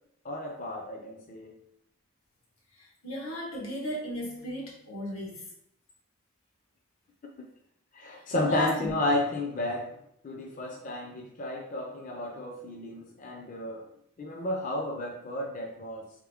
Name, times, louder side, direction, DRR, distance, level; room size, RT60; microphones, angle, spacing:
voice 1, 0.2-1.6 7.9-10.0 10.2-13.9 14.2-16.1, left 1 dB, 40° left, 1 dB, 0.4 m, -32 dB
voice 2, 2.7-5.5 8.2-8.9, left 1 dB, 90° left, -3 dB, 1.5 m, -36 dB
3.6 x 3.4 x 3.5 m, 0.72 s
head